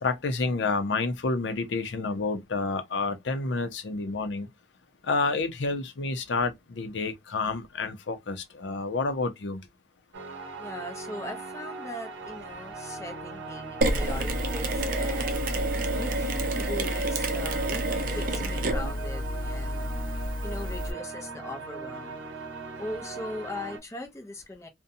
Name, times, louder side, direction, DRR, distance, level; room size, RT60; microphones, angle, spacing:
voice 1, 0.0-4.5 5.0-9.6, left 3 dB, 75° left, 0.5 m, -29 dB
sound 1, 10.1-23.8, right 4 dB, 85° right, 0.7 m, -39 dB
voice 2, 10.6-15.4 15.9-20.1 20.4-22.2 22.8-24.7, left 1 dB, 15° left, 0.5 m, -40 dB
Mechanisms, 13.8-20.9, right 1 dB, 50° right, 0.5 m, -29 dB
2.6 x 2.1 x 2.6 m
head